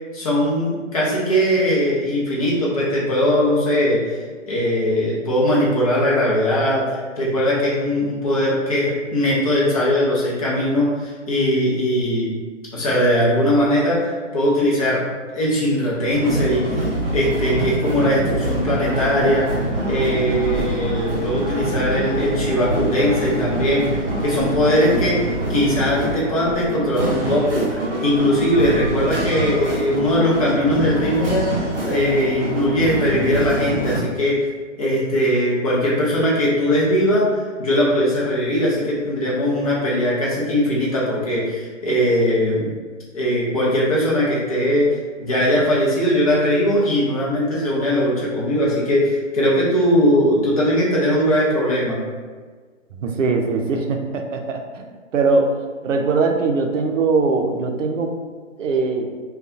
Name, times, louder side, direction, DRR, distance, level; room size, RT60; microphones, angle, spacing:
voice 1, 0.1-4.2 4.5-12.3 12.7-15.0 15.3-16.6 17.1-19.4 19.8-34.5 34.8-37.3 37.6-42.7 43.1-52.0, equal, 30° left, -6 dB, 0.6 m, -20 dB
sound 1, 16.1-34.0, right 1 dB, 45° right, 0.9 m, -25 dB
voice 2, 53.0-55.6 55.8-58.1 58.6-59.1, right 4 dB, 75° right, 4 dB, 0.5 m, -21 dB
2.6 x 2.3 x 2.5 m, 1.5 s
hypercardioid pair, 150°, 39 cm